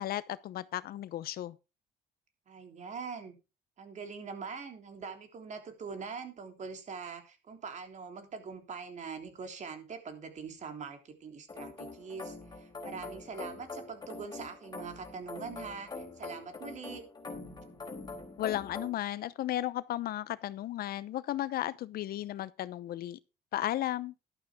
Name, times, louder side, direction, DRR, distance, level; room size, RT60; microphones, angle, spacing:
voice 1, 0.0-1.5 18.4-23.2 23.5-24.1, left 13 dB, 65° left, 0.8 m, -34 dB
voice 2, 2.5-3.3 3.8-17.0, right 5 dB, 45° right, 3.4 m, -43 dB
sound 1, 11.5-18.9, left 3 dB, 25° left, 3.9 m, -44 dB
12.5 x 11.5 x 3.6 m
cardioid pair, 110°, 17 cm